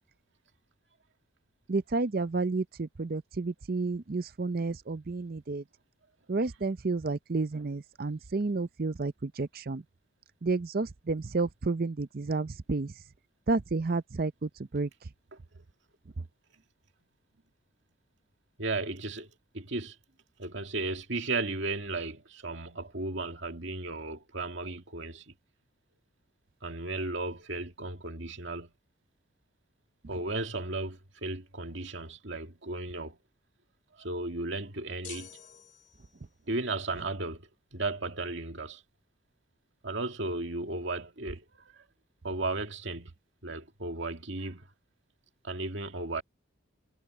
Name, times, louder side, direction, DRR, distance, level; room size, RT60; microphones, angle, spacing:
voice 1, 1.7-5.6 6.3-9.8 10.4-12.9 13.5-14.9, right 3 dB, 45° right, 0.5 m, -31 dB
voice 2, 18.6-19.3 19.5-20.0 20.4-25.3 26.6-28.7 30.1-33.2 34.0-35.3 36.5-38.8 39.8-41.4 42.2-43.1 43.4-44.7 45.4-46.2, right 2 dB, 60° right, 2.3 m, -35 dB
sound 1, 35.0-36.4, left 9 dB, 40° left, 2.8 m, -48 dB
head